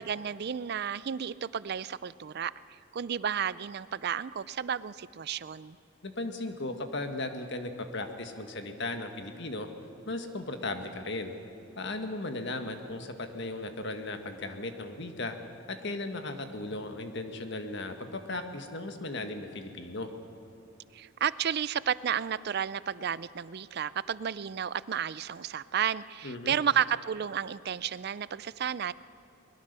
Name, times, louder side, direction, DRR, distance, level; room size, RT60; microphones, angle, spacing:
voice 1, 0.0-2.5 2.9-5.8 20.9-28.9, right 8 dB, 45° right, 18 dB, 0.4 m, -32 dB
voice 2, 6.0-9.7 10.1-11.3 11.8-15.4 15.7-20.1 26.2-26.6, left 2 dB, 55° left, 6 dB, 1.6 m, -36 dB
22.0 x 20.5 x 6.8 m, 2.7 s
head